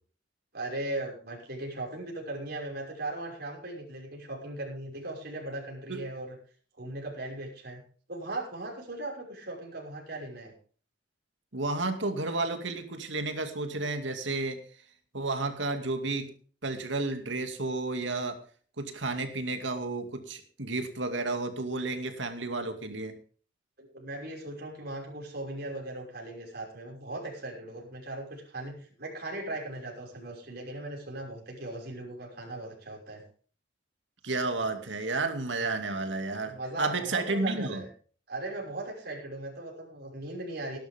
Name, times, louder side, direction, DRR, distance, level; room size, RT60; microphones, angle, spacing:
voice 1, 0.5-6.4 6.8-7.8 8.1-10.5 23.8-33.2 36.5-37.9 38.3-40.8, right 2 dB, 60° right, 0 dB, 5.8 m, -38 dB
voice 2, 11.5-14.6 15.1-16.3 16.6-18.4 18.8-23.2 34.2-37.8, right 3 dB, 75° right, 6 dB, 2.4 m, -32 dB
18.5 x 12.0 x 3.7 m, 0.43 s
head